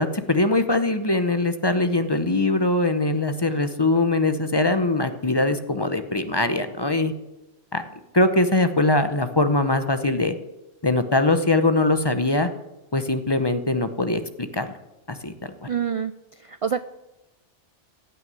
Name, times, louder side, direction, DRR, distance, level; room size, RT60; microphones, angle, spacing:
voice 1, 0.0-7.1 7.7-7.8 8.1-10.3 10.8-12.5 12.9-14.7 15.1-15.7, left 2 dB, 25° left, 9 dB, 0.8 m, -22 dB
voice 2, 15.7-16.1 16.4-16.8, right 7 dB, 60° right, 12 dB, 0.3 m, -26 dB
16.0 x 6.2 x 9.4 m, 0.96 s
omnidirectional pair, 1.2 m